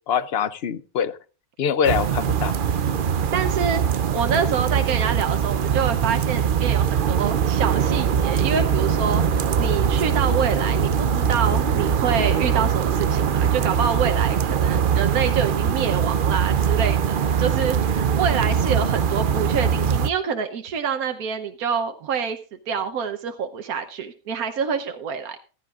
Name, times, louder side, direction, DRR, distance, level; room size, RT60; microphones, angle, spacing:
voice 1, 0.1-1.2 1.6-2.5, left 7 dB, 55° left, 16 dB, 0.7 m, -24 dB
sound 1, 1.8-20.1, right 7 dB, 50° right, 0.6 m, -22 dB
voice 2, 3.3-22.4 22.7-25.4, right 6 dB, 90° right, 6 dB, 1.4 m, -26 dB
15.0 x 14.0 x 2.5 m, 0.36 s
omnidirectional pair, 1.5 m